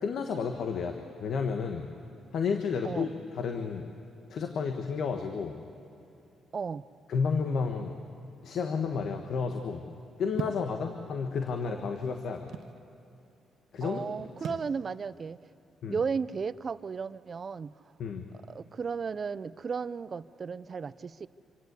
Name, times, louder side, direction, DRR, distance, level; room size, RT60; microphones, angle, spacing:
voice 1, 0.0-1.9 2.3-3.9 4.3-5.6 7.1-8.0 8.4-9.8 10.2-12.5 13.7-14.0 15.8-16.0 18.0-18.3, left 5 dB, 65° left, 5 dB, 1.4 m, -31 dB
voice 2, 6.5-6.8 13.8-15.4 15.9-17.7 18.3-21.3, right 5 dB, 40° right, 17 dB, 0.5 m, -34 dB
sound 1, 10.4-10.7 11.6-12.8 14.4-14.7, right 7 dB, 70° right, 0.8 m, -37 dB
26.5 x 17.0 x 8.2 m, 2.7 s
cardioid pair, 90°, 0 cm